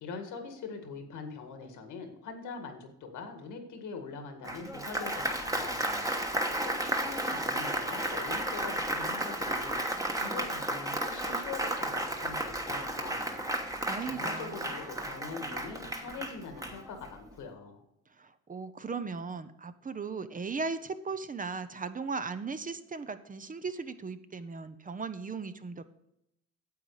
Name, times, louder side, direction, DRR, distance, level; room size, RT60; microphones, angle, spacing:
voice 1, 0.0-13.5 14.1-17.8, left 4 dB, 85° left, 5 dB, 1.9 m, -43 dB
Applause, 4.4-17.2, right 1 dB, 10° right, 1.2 m, -33 dB
voice 2, 13.8-14.7 18.2-25.9, right 4 dB, 25° right, 11 dB, 0.7 m, -37 dB
9.3 x 7.6 x 4.9 m, 0.80 s
cardioid pair, 90°, 30 cm